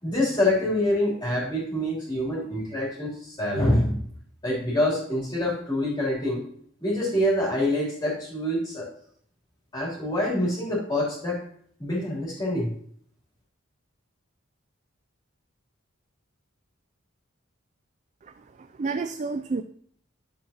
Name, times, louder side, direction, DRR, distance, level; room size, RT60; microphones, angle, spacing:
voice 1, 0.0-4.0 4.4-6.4 6.8-8.9 9.7-11.4 11.8-12.7, left 1 dB, 20° left, -7 dB, 3.2 m, -26 dB
voice 2, 18.6-19.6, right 4 dB, 35° right, 9 dB, 0.3 m, -30 dB
12.0 x 7.4 x 2.9 m, 0.62 s
head